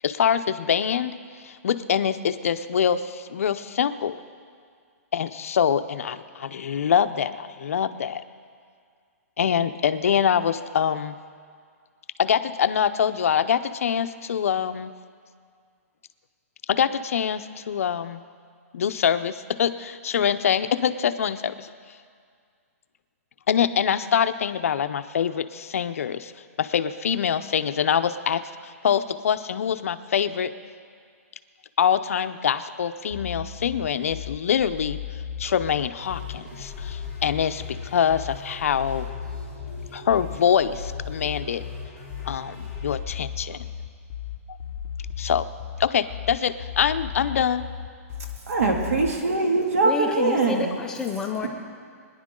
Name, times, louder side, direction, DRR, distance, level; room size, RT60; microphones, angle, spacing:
voice 1, 0.0-1.2 1.4-4.2 5.1-8.2 9.4-11.1 12.2-14.9 16.7-18.2 18.7-21.7 23.5-26.3 26.6-28.4 28.8-30.5 31.8-35.0 35.4-39.1 39.9-41.6 42.2-43.6 45.2-45.5 45.8-47.6, left 8 dB, 65° left, 11 dB, 0.6 m, -24 dB
sound 1, 33.1-49.1, left 8 dB, 25° left, 1.1 m, -35 dB
sound 2, 36.0-43.0, left 1 dB, 20° right, 3.6 m, -45 dB
voice 2, 48.5-50.8, right 3 dB, 70° right, 2 dB, 2.2 m, -22 dB
voice 3, 49.8-51.5, left 4 dB, 5° left, 3 dB, 0.4 m, -29 dB
22.5 x 10.5 x 3.8 m, 2.1 s
hypercardioid pair, 175°, 8 cm